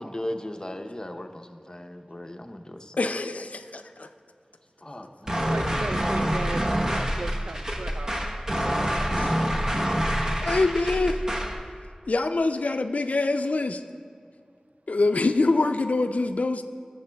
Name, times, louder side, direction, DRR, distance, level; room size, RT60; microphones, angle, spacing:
voice 1, 0.0-3.0 4.8-5.7, left 1 dB, 30° left, 5 dB, 0.7 m, -37 dB
voice 2, 3.0-4.1 9.2-9.6 10.4-11.2 12.1-13.8 14.9-16.6, left 3 dB, 75° left, 8 dB, 0.4 m, -25 dB
sound 1, 5.3-11.6, equal, 25° right, 0.9 m, -26 dB
voice 3, 5.5-8.2, right 2 dB, 75° right, 10 dB, 0.3 m, -36 dB
19.5 x 6.7 x 2.3 m, 2.2 s
wide cardioid pair, 45°, 2 cm